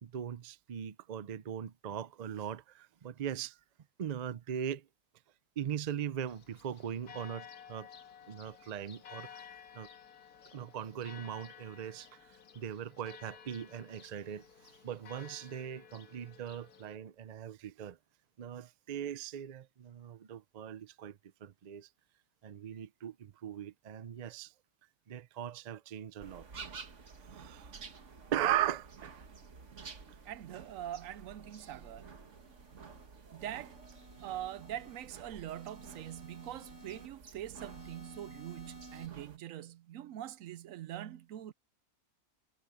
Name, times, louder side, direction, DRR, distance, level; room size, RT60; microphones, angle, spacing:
voice 1, 0.0-3.6 4.0-4.9 5.6-7.9 8.3-9.9 10.5-18.0 18.4-21.9 22.4-24.5 25.1-26.5 27.2-27.8 28.3-29.3 30.1-30.2, right 10 dB, 85° right, 0.3 m, -39 dB
Church bell, 6.3-17.0, left 8 dB, 90° left, 1.9 m, -54 dB
sound 1, 26.2-39.4, right 5 dB, 50° right, 1.8 m, -52 dB
voice 2, 30.3-32.1 33.3-33.7 34.2-41.5, right 12 dB, 70° right, 0.9 m, -43 dB
sound 2, 32.0-33.1 33.6-35.1 35.5-37.1 37.6-39.1, right 1 dB, 10° right, 3.9 m, -54 dB
omnidirectional pair, 1.6 m